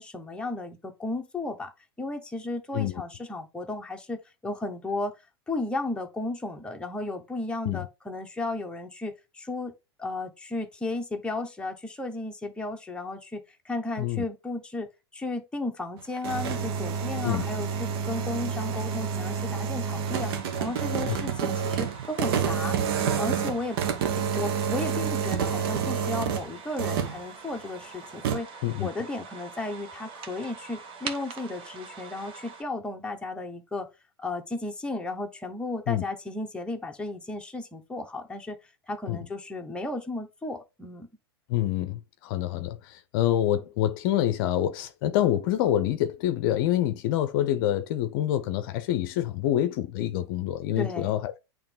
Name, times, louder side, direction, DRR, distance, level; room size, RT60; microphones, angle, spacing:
voice 1, 0.0-1.7 2.0-5.1 5.5-9.7 10.0-14.9 15.1-20.3 20.6-22.8 23.1-23.8 24.4-28.5 28.8-33.9 34.2-38.6 38.9-41.1 50.8-51.1, left 2 dB, 5° left, 1.2 m, -34 dB
sound 1, 16.0-26.5 26.8-27.2 28.2-28.4, right 7 dB, 60° right, 1.1 m, -28 dB
sound 2, 20.0-32.6, right 5 dB, 40° right, 1.2 m, -44 dB
voice 2, 41.5-51.4, left 12 dB, 55° left, 0.6 m, -26 dB
8.6 x 3.1 x 3.7 m
hypercardioid pair, 100°, 13 cm